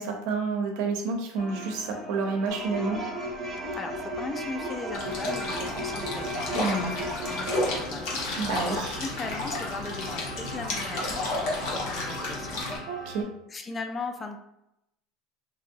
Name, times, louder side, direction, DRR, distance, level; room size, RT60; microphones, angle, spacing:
voice 1, 0.0-3.0 6.5-6.8 8.4-9.0 12.9-13.2, right 4 dB, 70° right, 2 dB, 0.6 m, -29 dB
sound 1, 1.4-13.2, equal, 40° left, 0.9 m, -42 dB
sound 2, 2.5-7.8, equal, 25° right, 0.7 m, -35 dB
voice 2, 3.8-6.9 7.2-8.3 9.0-13.1 13.5-14.4, left 3 dB, 20° left, 5 dB, 0.3 m, -38 dB
sound 3, 4.9-12.8, left 2 dB, 70° left, 0.9 m, -32 dB
3.0 x 2.7 x 2.6 m, 0.83 s
cardioid pair, 160°, 0 cm